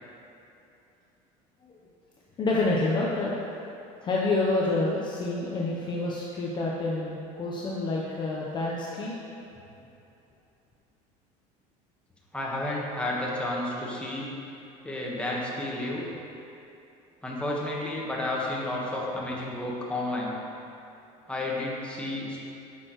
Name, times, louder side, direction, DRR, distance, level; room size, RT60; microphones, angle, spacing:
voice 1, 2.4-3.3 4.0-9.3, left 2 dB, 30° left, -4 dB, 0.8 m, -28 dB
voice 2, 12.3-14.3 14.8-16.1 17.2-20.4 21.3-22.4, left 1 dB, 5° left, -4 dB, 1.3 m, -31 dB
9.5 x 6.4 x 3.1 m, 2.8 s
cardioid pair, 130°, 16 cm